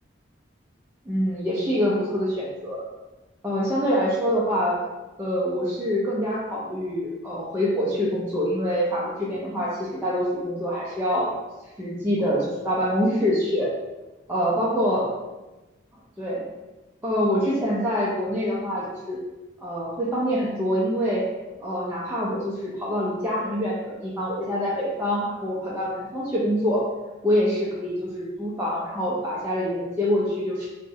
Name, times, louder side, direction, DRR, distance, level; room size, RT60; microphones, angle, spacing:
voice 1, 1.1-2.8 3.4-4.8 5.2-11.3 11.8-13.7 14.3-15.1 16.2-16.4 17.0-19.2 19.6-21.2 21.6-26.8 27.2-30.7, equal, 10° right, -8 dB, 0.3 m, -25 dB
3.5 x 2.0 x 2.6 m, 1.1 s
head